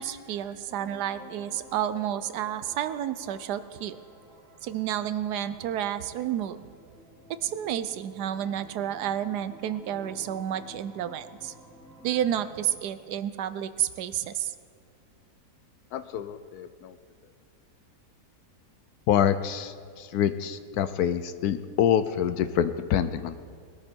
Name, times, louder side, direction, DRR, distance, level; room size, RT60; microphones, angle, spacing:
voice 1, 0.0-4.0 4.6-6.6 7.4-11.5 12.0-14.5, right 10 dB, 80° right, 13 dB, 1.2 m, -30 dB
sound 1, 0.7-12.8, equal, ahead, 2.7 m, -52 dB
voice 2, 15.9-16.9 19.1-23.3, left 9 dB, 70° left, 12 dB, 1.1 m, -26 dB
20.5 x 13.0 x 4.5 m, 2.1 s
omnidirectional pair, 1.7 m